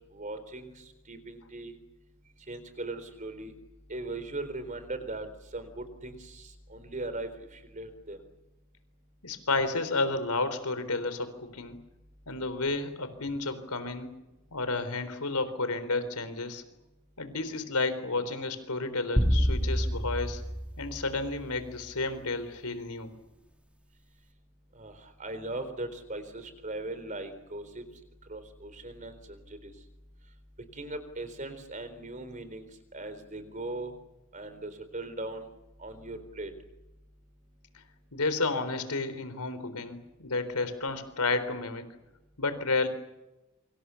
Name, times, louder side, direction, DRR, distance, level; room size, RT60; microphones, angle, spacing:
voice 1, 0.1-1.7 2.5-3.5 3.9-5.3 5.5-8.2 24.8-27.9 28.3-29.7 30.7-33.9 34.3-35.5 35.8-36.5, right 2 dB, 35° right, 10 dB, 3.9 m, -39 dB
voice 2, 9.2-11.8 12.3-14.1 14.5-16.6 17.2-20.4 20.8-23.1 38.1-41.9 42.4-42.9, left 3 dB, 90° left, 12 dB, 3.9 m, -31 dB
sound 1, 19.2-21.7, equal, 5° right, 1.9 m, -28 dB
27.0 x 25.5 x 7.1 m, 0.99 s
head